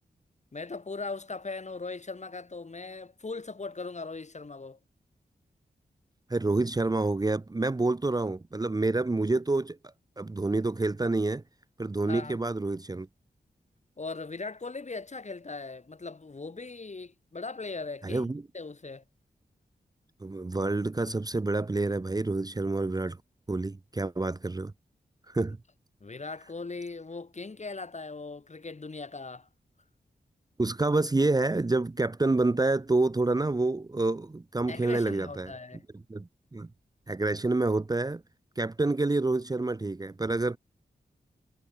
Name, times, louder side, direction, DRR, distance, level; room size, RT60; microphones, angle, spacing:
voice 1, 0.5-4.8 12.1-12.4 14.0-18.3 18.5-19.0 26.0-29.5 34.7-35.8, left 3 dB, 40° left, 2.1 m, -39 dB
voice 2, 6.3-9.8 10.2-11.4 11.8-13.1 18.0-18.4 20.2-23.2 23.5-24.7 25.3-25.6 30.6-35.5 36.1-36.7 37.1-38.2 38.6-40.6, right 2 dB, 20° right, 0.7 m, -28 dB
cardioid pair, 55°, 17 cm